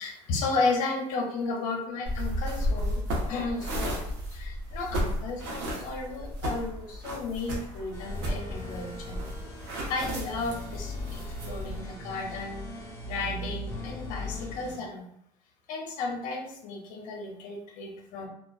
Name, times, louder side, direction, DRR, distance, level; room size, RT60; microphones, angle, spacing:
voice 1, 0.0-4.0 4.3-9.2 9.9-12.7 13.0-15.1 15.7-18.3, left 3 dB, 65° left, 1 dB, 0.7 m, -33 dB
sound 1, 2.0-11.8, equal, 85° right, 0.8 m, -33 dB
sound 2, 7.9-14.7, left 1 dB, 15° left, 0.9 m, -39 dB
2.3 x 2.3 x 2.3 m, 0.72 s
supercardioid pair, 95°, 15 cm